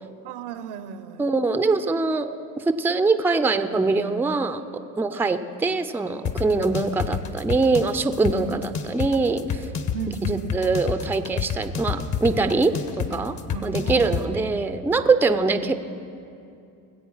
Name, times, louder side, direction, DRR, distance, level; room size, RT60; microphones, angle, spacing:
voice 1, 0.2-1.3 8.5-8.6 9.9-10.5 13.5-14.5, right 7 dB, 70° right, 12 dB, 0.9 m, -35 dB
voice 2, 1.2-4.6 5.0-9.6 10.3-13.3 13.6-15.7, right 3 dB, 5° right, 10 dB, 0.5 m, -23 dB
sound 1, 6.3-14.3, left 7 dB, 40° left, 1.1 m, -29 dB
20.5 x 8.1 x 5.6 m, 2.6 s
supercardioid pair, 85°, 42 cm